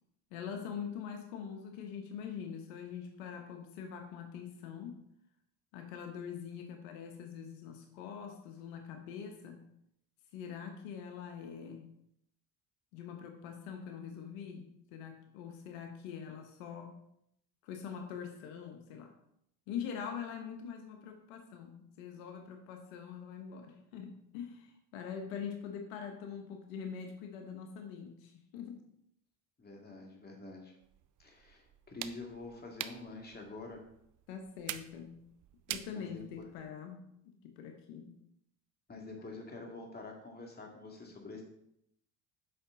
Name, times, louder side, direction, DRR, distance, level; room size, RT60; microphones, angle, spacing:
voice 1, 0.3-5.0 5.7-9.6 10.3-11.9 12.9-17.0 17.6-19.1 19.7-28.8 34.3-35.2 35.7-38.1, left 7 dB, 85° left, 4 dB, 1.1 m, -44 dB
voice 2, 29.6-30.7 31.2-33.8 35.9-36.4 38.9-41.4, left 3 dB, 25° left, 0 dB, 2.4 m, -47 dB
sound 1, 30.8-36.7, right 12 dB, 50° right, 0.6 m, -46 dB
8.1 x 5.7 x 3.9 m, 0.75 s
supercardioid pair, 85°, 39 cm